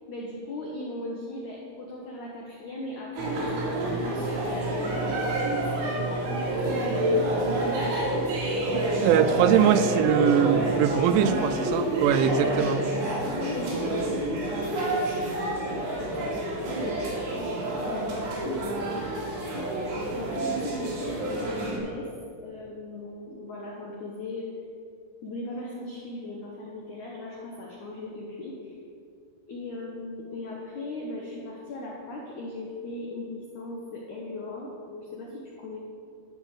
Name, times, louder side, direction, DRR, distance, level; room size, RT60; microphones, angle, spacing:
voice 1, 0.1-8.3 9.0-9.5 11.1-22.1 22.4-24.5 25.2-28.8 29.5-35.8, left 2 dB, 85° left, -2 dB, 1.7 m, -38 dB
sound 1, 3.2-21.8, right 1 dB, 65° right, 4.4 m, -28 dB
voice 2, 9.0-12.8, right 9 dB, 85° right, 10 dB, 3.0 m, -22 dB
12.5 x 6.3 x 7.4 m, 2.5 s
omnidirectional pair, 5.4 m